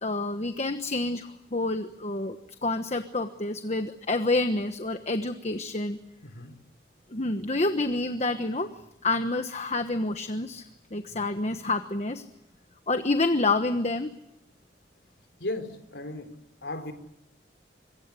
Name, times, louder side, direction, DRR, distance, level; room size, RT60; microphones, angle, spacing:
voice 1, 0.0-6.0 7.1-8.7 9.0-10.6 10.9-12.2 12.9-14.1, left 2 dB, 40° left, 8 dB, 1.2 m, -28 dB
voice 2, 6.2-6.5 15.4-16.3 16.6-16.9, left 2 dB, 85° left, 7 dB, 3.9 m, -35 dB
26.0 x 23.0 x 8.4 m, 0.85 s
head